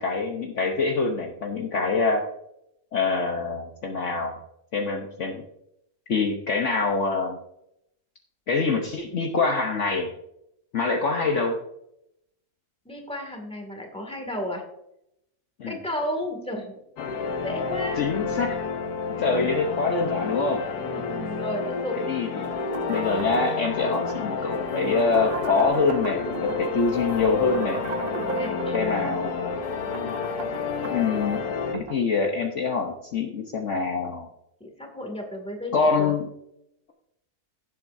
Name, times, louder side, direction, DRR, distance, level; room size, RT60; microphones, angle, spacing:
voice 1, 0.0-2.3 2.9-4.4 4.7-5.4 6.1-7.4 8.5-10.1 10.7-11.6 15.6-15.8 18.0-18.6 19.2-20.6 22.1-22.5 22.9-27.8 28.7-29.6 30.9-31.4 31.7-34.3 35.7-36.3, left 4 dB, 55° left, 2 dB, 1.2 m, -25 dB
voice 2, 12.9-14.6 15.6-16.8 17.4-18.0 19.1-19.5 20.8-22.0 28.2-28.8 34.6-36.1, equal, 5° left, 2 dB, 2.1 m, -34 dB
sound 1, 17.0-31.7, left 5 dB, 85° left, 1.5 m, -30 dB
sound 2, 22.4-32.0, right 3 dB, 45° right, 0.9 m, -36 dB
16.0 x 7.7 x 2.6 m, 0.80 s
omnidirectional pair, 1.6 m